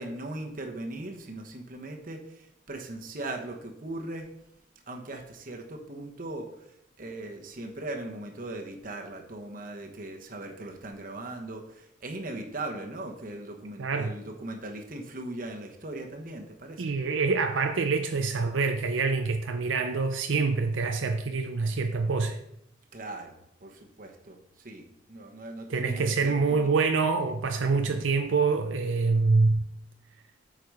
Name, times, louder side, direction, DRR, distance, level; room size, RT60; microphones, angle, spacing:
voice 1, 0.0-4.3 4.9-16.9 22.9-26.7, right 2 dB, 45° right, 3 dB, 1.1 m, -39 dB
voice 2, 13.8-14.1 16.8-22.4 25.7-29.6, right 4 dB, 85° right, 6 dB, 0.5 m, -26 dB
8.2 x 4.8 x 4.8 m, 0.77 s
head